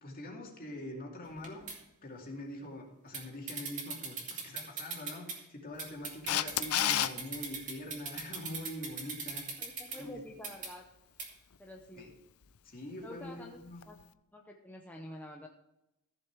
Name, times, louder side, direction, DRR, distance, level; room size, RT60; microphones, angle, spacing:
voice 1, 0.0-1.6 2.0-9.6 10.0-10.2 12.0-12.1 12.6-13.8, left 1 dB, 40° left, 0 dB, 2.6 m, -44 dB
sound 1, 1.3-1.8 3.1-3.2 3.5-5.4 5.8-10.0 10.4-10.7 11.2-11.3, right 5 dB, 35° right, 2.5 m, -40 dB
Camera, 6.3-7.1 13.8-13.9, left 12 dB, 70° left, 0.5 m, -28 dB
voice 2, 9.6-10.9 11.6-12.1 13.0-13.6 13.9-14.0 14.3-15.5, left 1 dB, 5° left, 0 dB, 0.8 m, -48 dB
14.5 x 7.1 x 4.7 m, 0.92 s
head